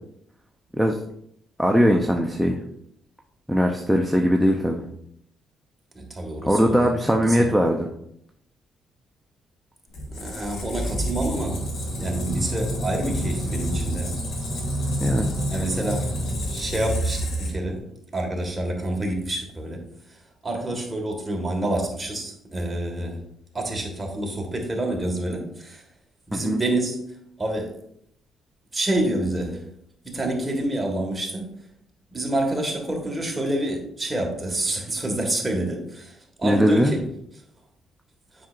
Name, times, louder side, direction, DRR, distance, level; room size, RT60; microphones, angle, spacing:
voice 1, 1.6-2.6 3.5-4.8 6.5-7.9 15.0-15.3 26.3-26.6 36.4-37.0, equal, ahead, 2 dB, 0.6 m, -20 dB
voice 2, 5.9-6.9 7.1-7.5 10.1-11.6 12.0-14.1 15.5-16.1 16.5-17.8 18.1-19.8 20.4-23.2 23.5-25.8 26.3-27.0 27.4-27.7 28.7-29.6 30.0-31.5 32.1-37.0, right 1 dB, 15° right, 0 dB, 1.7 m, -27 dB
Squeak, 9.9-17.8, equal, 70° left, 1.6 m, -28 dB
7.6 x 5.7 x 2.5 m, 0.72 s
cardioid pair, 90°, 0 cm